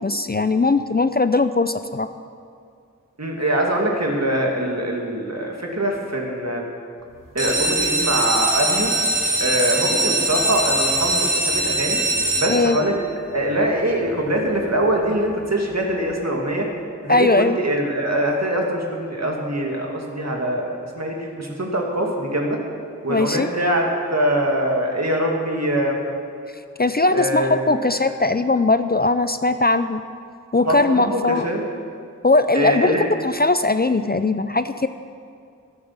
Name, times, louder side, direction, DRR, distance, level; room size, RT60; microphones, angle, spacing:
voice 1, 0.0-2.1 12.5-12.8 17.1-17.6 23.1-23.5 26.8-30.0 30.5-31.5 32.2-34.9, left 3 dB, 30° left, 11 dB, 0.5 m, -19 dB
voice 2, 3.2-6.6 7.3-8.9 9.4-12.0 12.4-12.9 13.3-16.7 17.0-22.6 23.0-26.0 27.1-27.8 30.7-31.6 32.5-33.0, right 1 dB, 55° right, 0 dB, 2.3 m, -23 dB
sound 1, 7.3-13.0 13.6-14.1 14.5-14.6 14.8-14.9 15.4-15.5, right 2 dB, 80° right, 1.6 m, -22 dB
13.5 x 8.8 x 7.3 m, 2.3 s
wide cardioid pair, 40°, 32 cm